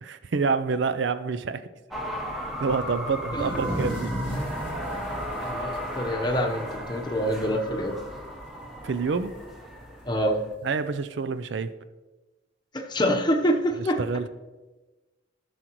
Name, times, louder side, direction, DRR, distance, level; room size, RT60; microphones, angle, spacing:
voice 1, 0.0-1.7 2.3-4.1 8.8-9.4 10.6-11.7 14.0-14.3, right 4 dB, 65° right, 13 dB, 0.4 m, -28 dB
sound 1, 1.9-10.5, equal, ahead, 1.0 m, -35 dB
sound 2, 3.2-6.9 7.3-7.4 7.8-8.2 9.4-9.5 10.5-10.6, equal, 25° right, 1.7 m, -35 dB
voice 2, 5.4-8.0 10.1-10.4 12.7-14.0, equal, 20° left, 3 dB, 0.9 m, -26 dB
14.5 x 6.4 x 3.0 m, 1.2 s
head